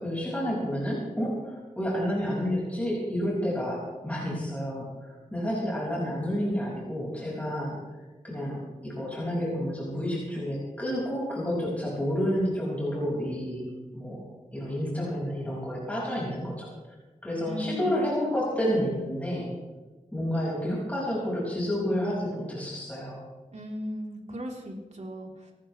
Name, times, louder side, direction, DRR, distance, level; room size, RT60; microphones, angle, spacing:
voice 1, 0.0-7.8 8.2-13.7 13.9-14.2 14.5-16.7 17.2-19.5 20.1-23.2, equal, 10° left, -6 dB, 5.9 m, -30 dB
voice 2, 17.5-18.0 23.5-25.5, equal, 60° right, -1 dB, 3.8 m, -37 dB
28.0 x 12.5 x 3.4 m, 1.3 s
wide cardioid pair, 105°, 13 cm